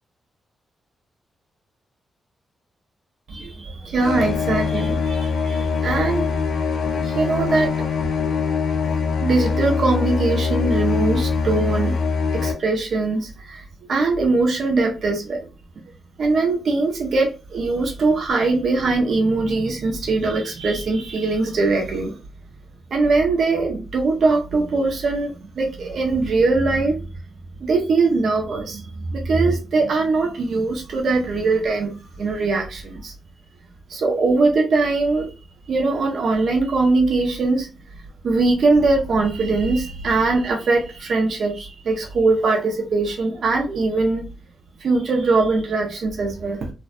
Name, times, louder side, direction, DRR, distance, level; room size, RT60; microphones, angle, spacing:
voice 1, 3.3-6.3 6.9-7.9 9.0-12.0 12.3-13.6 13.9-15.4 16.2-22.2 22.9-27.0 27.6-33.1 33.9-35.3 35.7-37.7 38.2-44.3 44.8-46.7, right 3 dB, 65° right, 1 dB, 0.6 m, -21 dB
sound 1, 4.0-12.5, left 5 dB, 75° left, 0.4 m, -23 dB
2.5 x 2.1 x 2.4 m, 0.32 s
supercardioid pair, 45°, 0 cm